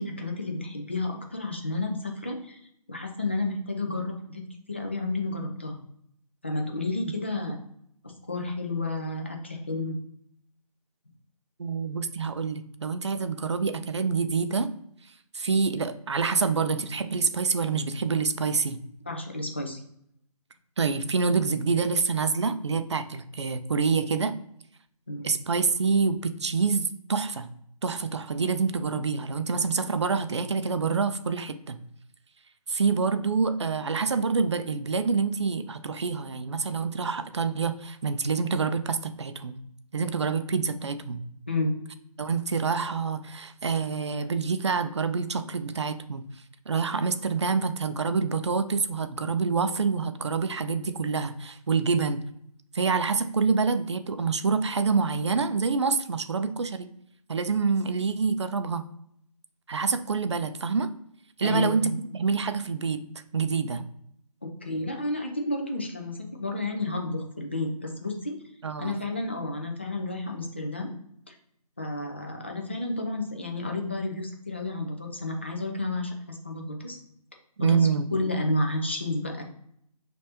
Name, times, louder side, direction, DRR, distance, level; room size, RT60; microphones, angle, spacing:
voice 1, 0.0-2.6 2.9-4.4 4.7-5.8 6.4-7.6 8.3-10.0 19.1-19.8 25.1-25.3 41.5-41.8 61.4-62.0 64.4-68.3 68.8-70.9 71.3-71.4 71.8-77.0 77.6-77.8 78.1-79.4, left 2 dB, 20° left, 2 dB, 0.4 m, -31 dB
voice 2, 11.6-14.7 15.3-18.8 20.8-24.3 25.2-27.5 27.8-31.8 32.7-39.6 39.9-41.2 42.2-46.2 46.7-52.2 52.7-56.9 57.3-58.8 59.7-60.9 61.4-63.0 63.3-63.8 68.6-69.0 77.6-78.0, right 5 dB, 45° right, 11 dB, 0.4 m, -27 dB
5.0 x 3.3 x 2.8 m, 0.71 s
figure-of-eight pair, 165°, 20 cm